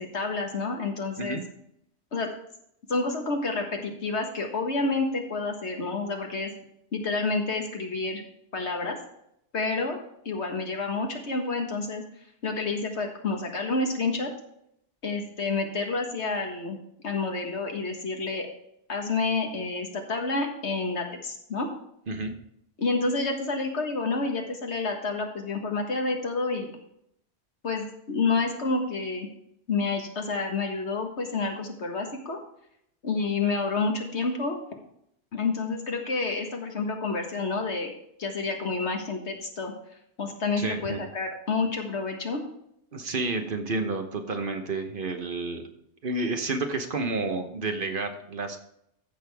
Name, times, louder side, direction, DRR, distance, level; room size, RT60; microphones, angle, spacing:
voice 1, 0.0-1.4 2.1-2.3 2.9-6.5 6.9-8.2 8.5-9.0 9.5-10.0 10.2-12.0 12.4-14.3 15.0-16.8 17.0-18.5 18.9-21.7 22.8-26.7 27.6-29.3 29.7-32.4 33.0-34.6 35.3-37.9 38.2-39.7 40.2-42.4, left 3 dB, 75° left, 3 dB, 1.9 m, -29 dB
voice 2, 40.6-41.0 42.9-45.7 46.0-48.6, right 3 dB, 50° right, 6 dB, 1.2 m, -30 dB
14.5 x 6.5 x 3.5 m, 0.74 s
omnidirectional pair, 1.1 m